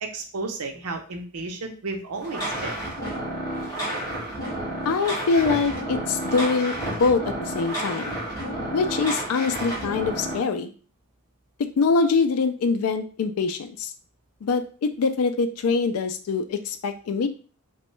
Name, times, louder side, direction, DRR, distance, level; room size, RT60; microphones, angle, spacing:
voice 1, 0.0-2.8, right 3 dB, 80° right, 4 dB, 0.6 m, -33 dB
sound 1, 2.2-10.4, right 1 dB, 15° left, 1.5 m, -30 dB
voice 2, 4.8-8.2 8.7-10.7 11.8-13.9 14.4-17.3, left 4 dB, 75° left, 8 dB, 0.4 m, -24 dB
3.0 x 2.2 x 3.0 m, 0.39 s
head